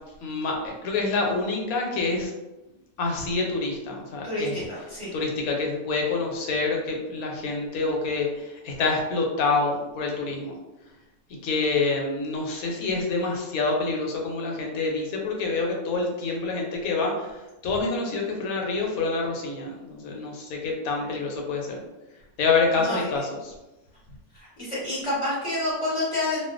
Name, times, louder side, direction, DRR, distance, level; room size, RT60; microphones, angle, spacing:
voice 1, 0.2-2.3 3.0-4.5 5.1-10.5 11.3-17.3 17.6-21.8 22.4-23.5, left 3 dB, 80° left, 0 dB, 1.0 m, -27 dB
voice 2, 4.2-5.1 21.0-21.2 22.8-23.1 24.3-26.4, left 1 dB, 25° left, -9 dB, 1.0 m, -29 dB
2.4 x 2.2 x 2.4 m, 1.0 s
omnidirectional pair, 1.5 m